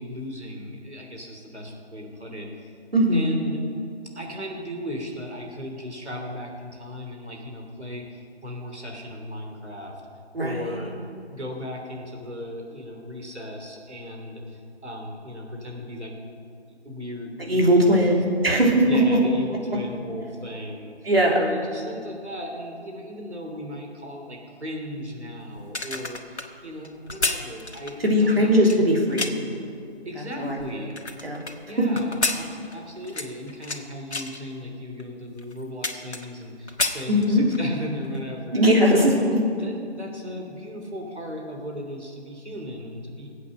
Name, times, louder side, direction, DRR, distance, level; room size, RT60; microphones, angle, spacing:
voice 1, 0.0-2.7 3.1-3.6 4.1-9.9 10.4-10.9 11.3-16.1 16.8-18.1 18.8-28.6 30.0-31.0 31.7-38.6 39.1-39.2 39.6-43.3, equal, 85° right, 1 dB, 3.3 m, -36 dB
voice 2, 2.9-3.3 10.3-10.8 17.4-19.0 21.0-21.4 28.0-29.4 30.4-30.6 31.2-31.4 37.1-37.4 38.5-39.4, equal, 60° right, -1 dB, 3.4 m, -19 dB
sound 1, 25.6-29.6 30.1-31.5 32.0-33.8 34.1-34.4 35.0-35.1 35.4-36.4 36.7-37.7 38.0-38.2, left 2 dB, 80° left, 1.6 m, -30 dB
21.0 x 8.4 x 6.3 m, 2.4 s
figure-of-eight pair, 170°, 33 cm